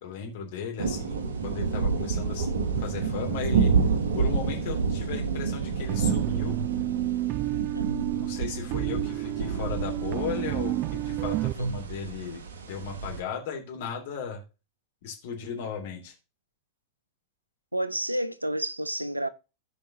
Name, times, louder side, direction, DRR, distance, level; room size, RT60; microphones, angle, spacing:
voice 1, 0.0-2.5 2.8-3.7 4.1-6.6 8.1-14.4 15.0-16.1, left 6 dB, 55° left, 3.0 m, -36 dB
sound 1, 0.8-13.2, right 5 dB, 65° right, 1.3 m, -29 dB
sound 2, 5.9-11.5, right 17 dB, 40° right, 0.4 m, -30 dB
voice 2, 7.7-8.2 11.6-11.8 17.7-19.3, right 1 dB, 85° right, 0.7 m, -30 dB
15.5 x 5.3 x 2.9 m
figure-of-eight pair, 90°, 0 cm